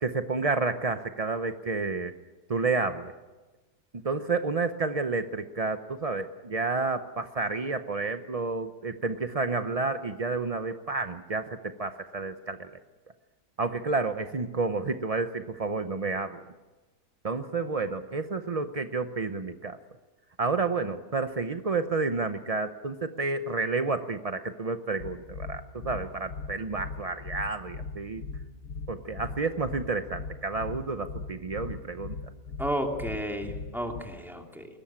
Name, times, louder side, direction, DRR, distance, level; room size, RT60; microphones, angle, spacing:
voice 1, 0.0-2.1 2.5-3.1 4.0-12.7 13.6-16.4 17.2-19.8 20.4-28.2 28.9-32.2, right 3 dB, 50° right, 9 dB, 0.4 m, -30 dB
sound 1, 25.0-34.0, left 4 dB, 65° left, 1.9 m, -39 dB
voice 2, 32.6-34.7, equal, ahead, 2 dB, 2.7 m, -32 dB
21.5 x 19.0 x 8.8 m, 1.2 s
omnidirectional pair, 1.8 m